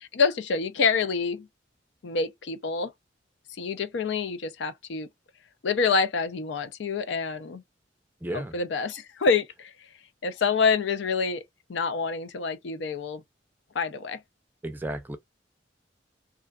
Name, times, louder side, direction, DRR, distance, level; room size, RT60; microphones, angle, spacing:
voice 1, 0.0-1.5 2.0-2.9 3.6-5.1 5.6-7.6 8.3-9.7 10.2-11.4 11.7-13.2 13.7-14.2, left 5 dB, 90° left, 0.5 m, -27 dB
voice 2, 8.2-8.5 14.6-15.2, right 1 dB, 10° right, 0.4 m, -33 dB
2.5 x 2.2 x 2.3 m
head